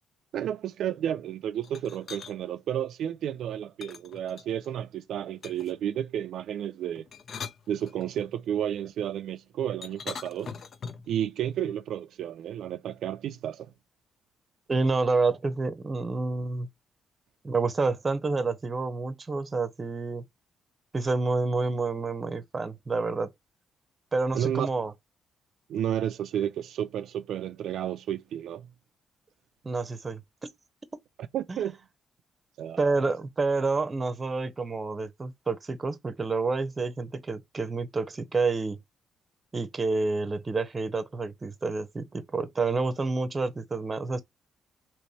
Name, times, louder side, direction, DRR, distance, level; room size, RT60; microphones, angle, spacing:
voice 1, 0.3-7.1 7.7-10.5 11.1-13.7 24.3-24.7 25.7-28.7 31.3-31.8 32.6-32.9, right 10 dB, 75° right, 0.3 m, -31 dB
sound 1, 1.6-2.3 3.8-4.7 5.4-5.8 7.0-8.3 9.8-11.1, left 6 dB, 55° left, 0.5 m, -41 dB
voice 2, 14.7-16.7 17.4-20.2 20.9-23.3 24.1-24.9 29.6-30.2 31.5-31.6 32.8-38.8 39.5-44.2, right 3 dB, 30° right, 0.8 m, -28 dB
3.2 x 3.0 x 4.2 m
cardioid pair, 90°, 0 cm